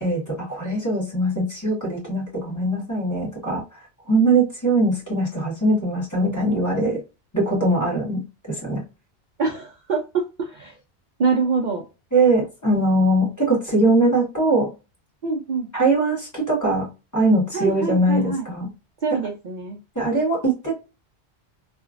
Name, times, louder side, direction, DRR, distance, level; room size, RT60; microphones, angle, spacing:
voice 1, 0.0-3.6 4.1-7.0 7.3-8.2 8.5-8.8 12.1-14.7 15.7-16.9 17.1-18.7 19.9-20.7, right 2 dB, 15° left, -4 dB, 1.4 m, -21 dB
voice 2, 9.4-10.8 11.2-11.8 15.2-15.7 17.5-18.5 19.0-19.8, right 4 dB, 55° right, 1 dB, 0.6 m, -25 dB
2.9 x 2.4 x 2.4 m, 0.29 s
omnidirectional pair, 1.1 m